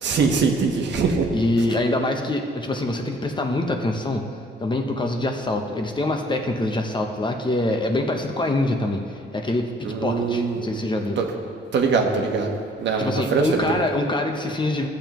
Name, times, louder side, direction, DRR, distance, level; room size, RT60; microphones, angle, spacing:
voice 1, 0.0-1.3 9.8-10.7 11.2-11.3 11.7-12.5 12.8-13.6, right 5 dB, 65° right, 2 dB, 1.2 m, -22 dB
voice 2, 1.3-4.2 4.6-11.2 13.0-14.9, left 2 dB, 25° left, 3 dB, 0.9 m, -24 dB
14.5 x 7.0 x 3.1 m, 2.4 s
cardioid pair, 90°, 20 cm